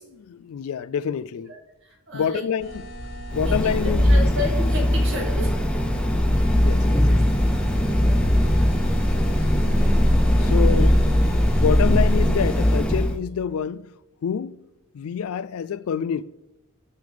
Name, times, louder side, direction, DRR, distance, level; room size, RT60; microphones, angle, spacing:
voice 1, 0.2-1.5 2.1-2.9 3.3-4.3 6.5-7.2 10.4-11.2 11.6-13.9 14.2-14.6 14.9-16.2, left 7 dB, 75° left, 0.3 m, -27 dB
voice 2, 1.5-2.4 3.3-5.5 7.1-7.2 10.4-10.9, left 2 dB, 55° right, 2.2 m, -32 dB
sound 1, 2.6-12.8, equal, 55° left, 1.2 m, -37 dB
sound 2, 3.3-13.2, left 1 dB, 5° left, 0.5 m, -20 dB
sound 3, 6.2-10.9, right 1 dB, 40° right, 2.1 m, -36 dB
9.4 x 6.8 x 3.5 m
head